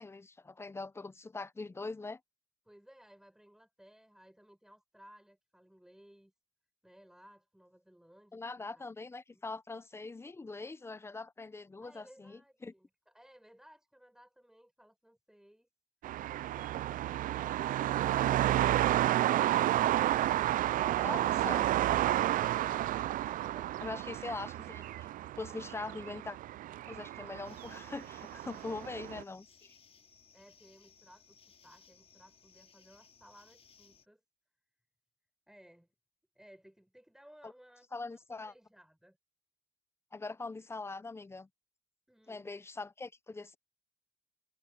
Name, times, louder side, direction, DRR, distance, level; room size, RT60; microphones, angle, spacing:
voice 1, 0.0-2.2 8.3-12.7 21.0-21.7 23.8-25.1 25.4-26.4 26.9-29.7 37.4-37.5 37.9-38.5 40.1-41.5 42.3-43.6, left 3 dB, 15° left, 0.7 m, -42 dB
voice 2, 2.7-6.3 6.8-8.9 9.3-9.4 11.8-15.7 28.5-28.9 30.3-34.2 35.5-35.9 36.3-39.2 42.1-42.5, equal, 5° right, 6.1 m, -60 dB
sound 1, 16.0-29.2, right 13 dB, 55° right, 0.4 m, -31 dB
sound 2, 27.4-34.1, left 6 dB, 35° left, 5.8 m, -62 dB
cardioid pair, 110°, 17 cm